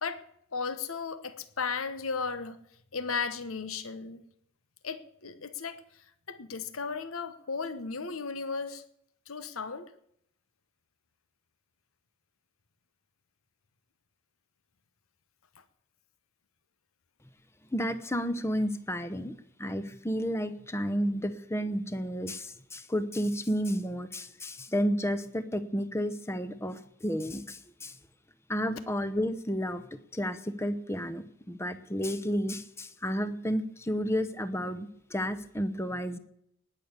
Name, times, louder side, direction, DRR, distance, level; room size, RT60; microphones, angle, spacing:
voice 1, 0.5-2.6 2.9-4.2 4.8-5.8 6.3-8.8 9.3-9.9, left 5 dB, 90° left, 12 dB, 1.1 m, -35 dB
voice 2, 17.7-28.0 28.5-29.8 30.1-36.2, equal, 10° left, 13 dB, 0.8 m, -31 dB
19.0 x 6.9 x 8.1 m, 0.73 s
head